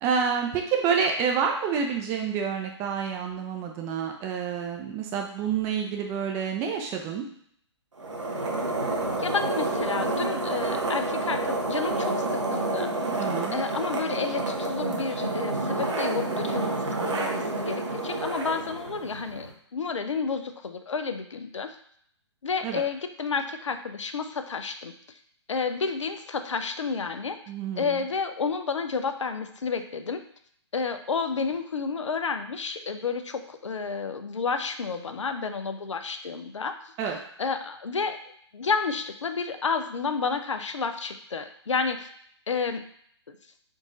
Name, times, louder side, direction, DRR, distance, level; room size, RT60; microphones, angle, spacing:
voice 1, 0.0-7.2 13.2-13.5 22.6-22.8 27.5-28.0 37.0-37.2, right 6 dB, 20° right, 3 dB, 0.4 m, -28 dB
sound 1, 8.0-19.5, right 2 dB, 75° right, 0.9 m, -29 dB
voice 2, 9.2-12.9 13.5-21.8 22.4-24.9 25.5-27.4 27.8-30.2 30.7-36.9 37.4-38.2 38.5-42.1 42.5-42.8, left 5 dB, 80° left, 8 dB, 0.5 m, -30 dB
3.8 x 2.4 x 3.9 m, 0.65 s
figure-of-eight pair, 135°, 15 cm